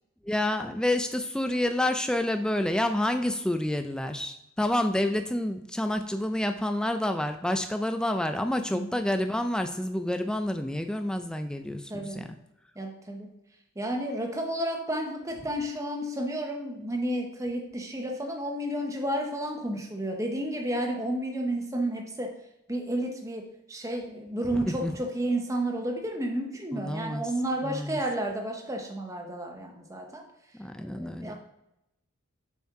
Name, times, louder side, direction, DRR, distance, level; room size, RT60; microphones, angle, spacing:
voice 1, 0.2-12.4 24.5-24.9 26.7-27.3 27.6-28.0 30.5-31.3, left 1 dB, 5° left, 6 dB, 0.4 m, -28 dB
voice 2, 8.7-9.0 11.9-12.3 12.8-13.3 13.8-22.3 22.7-30.2 30.8-31.3, right 1 dB, 15° right, 2 dB, 0.8 m, -31 dB
7.0 x 4.3 x 4.8 m, 0.87 s
head